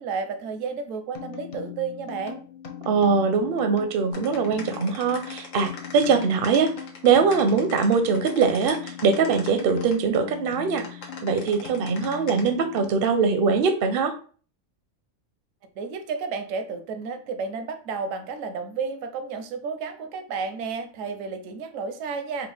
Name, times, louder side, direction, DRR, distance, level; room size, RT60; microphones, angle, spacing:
voice 1, 0.0-2.4 15.8-22.5, right 5 dB, 85° right, 7 dB, 1.0 m, -32 dB
sound 1, 1.1-13.3, left 9 dB, 60° left, 0.3 m, -40 dB
voice 2, 2.9-6.7 7.0-10.8 11.2-14.1, right 5 dB, 65° right, 7 dB, 0.6 m, -22 dB
sound 2, 4.1-9.9 10.7-12.5, left 4 dB, 80° left, 1.2 m, -41 dB
4.5 x 2.1 x 3.3 m, 0.41 s
omnidirectional pair, 1.3 m